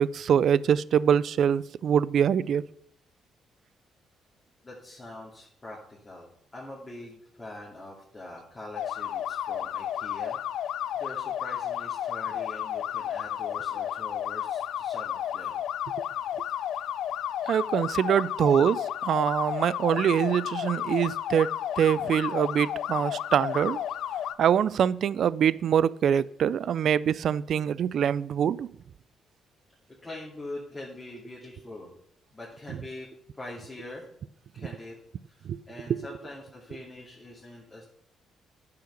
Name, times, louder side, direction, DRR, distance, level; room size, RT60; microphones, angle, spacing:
voice 1, 0.0-2.6 17.5-21.5 21.8-23.8 24.4-28.7 34.6-34.7 35.4-35.6 35.9-36.0, right 8 dB, 65° right, 0.3 m, -24 dB
voice 2, 4.6-15.6 30.0-31.9 32.3-33.1 33.3-34.1 34.5-35.0 35.3-37.8, left 1 dB, 20° left, 2.7 m, -43 dB
sound 1, 8.7-24.3, left 10 dB, 80° left, 0.4 m, -32 dB
10.0 x 5.7 x 6.5 m
cardioid pair, 90°, 0 cm